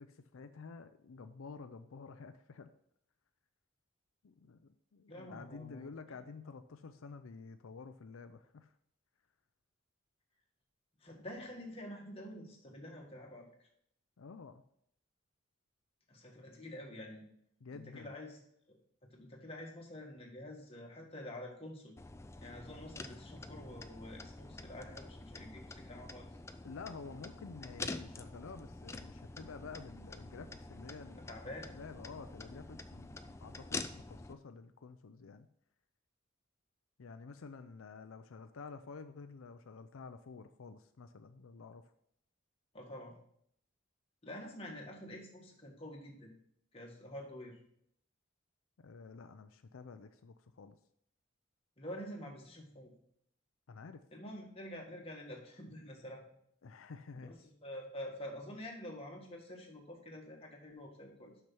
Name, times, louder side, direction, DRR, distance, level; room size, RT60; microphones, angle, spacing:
voice 1, 0.0-2.7 4.2-8.7 14.2-14.6 17.6-18.1 26.6-35.5 37.0-41.8 48.8-50.8 53.7-54.0 56.6-57.3, left 4 dB, 90° left, 9 dB, 0.5 m, -50 dB
voice 2, 5.1-5.9 11.0-13.5 16.1-17.3 17.7-18.4 18.7-18.8 19.1-22.0 22.4-26.3 31.2-31.7 42.7-43.1 44.2-46.3 46.7-47.6 51.8-52.9 54.1-56.2 57.1-61.3, left 1 dB, 30° left, -1 dB, 1.7 m, -47 dB
sound 1, 22.0-34.3, left 3 dB, 15° left, 0.4 m, -47 dB
6.2 x 6.0 x 5.9 m, 0.69 s
head